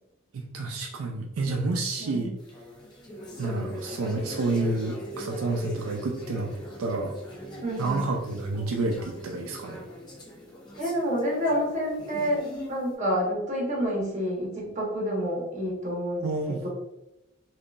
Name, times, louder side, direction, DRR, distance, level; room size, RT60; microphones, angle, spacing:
voice 1, 0.3-2.3 3.4-6.5 6.8-7.1 7.8-9.8 16.2-16.7, right 2 dB, 80° right, 2 dB, 0.4 m, -29 dB
voice 2, 2.0-2.3 7.6-8.1 10.8-12.4 12.7-16.7, equal, 35° right, -3 dB, 1.0 m, -28 dB
sound 1, 2.4-12.9, equal, 20° left, 0.6 m, -41 dB
3.7 x 2.4 x 2.4 m, 0.92 s
head